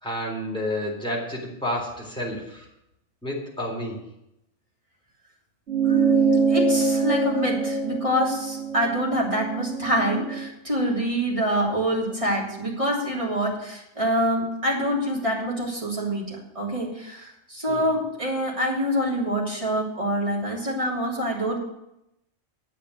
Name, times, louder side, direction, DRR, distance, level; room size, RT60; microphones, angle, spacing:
voice 1, 0.0-2.7 3.2-4.0 17.7-17.9, left 1 dB, 5° left, -3 dB, 3.5 m, -30 dB
sound 1, 5.7-10.5, right 5 dB, 50° right, 3.0 m, -24 dB
voice 2, 5.8-21.6, equal, 25° right, -4 dB, 3.2 m, -26 dB
9.3 x 7.4 x 8.1 m, 0.85 s
omnidirectional pair, 1.4 m